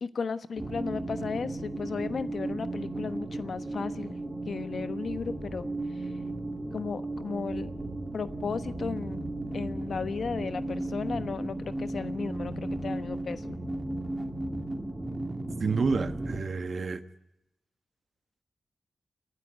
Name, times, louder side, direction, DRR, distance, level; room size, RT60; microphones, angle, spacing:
voice 1, 0.0-4.2 4.5-5.7 6.7-7.7 8.1-9.2 9.5-13.6, left 5 dB, 70° left, 1.1 m, -35 dB
sound 1, 0.6-16.4, right 2 dB, 25° right, 2.5 m, -35 dB
sound 2, 5.1-5.7 6.2-9.3 9.6-10.5 11.0-14.1 14.4-14.7, equal, ahead, 2.7 m, -45 dB
voice 2, 15.6-17.0, right 4 dB, 60° right, 1.4 m, -29 dB
29.5 x 12.0 x 9.3 m
wide cardioid pair, 95°, 0 cm